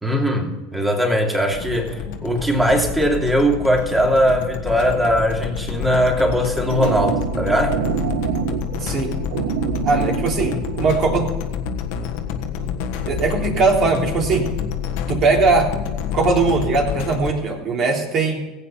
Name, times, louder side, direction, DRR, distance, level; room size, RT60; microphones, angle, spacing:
voice 1, 0.0-7.7, equal, 10° right, 1 dB, 2.9 m, -20 dB
sound 1, 1.5-17.3, left 7 dB, 70° left, 1.4 m, -28 dB
sound 2, 6.3-11.3, right 10 dB, 80° right, 0.8 m, -27 dB
voice 2, 8.8-9.1 9.8-11.3 12.6-12.7 13.0-14.5 15.1-15.7 16.1-18.4, right 4 dB, 45° right, 1 dB, 3.4 m, -20 dB
16.0 x 8.4 x 5.7 m, 1.2 s
supercardioid pair, 100°, 0 cm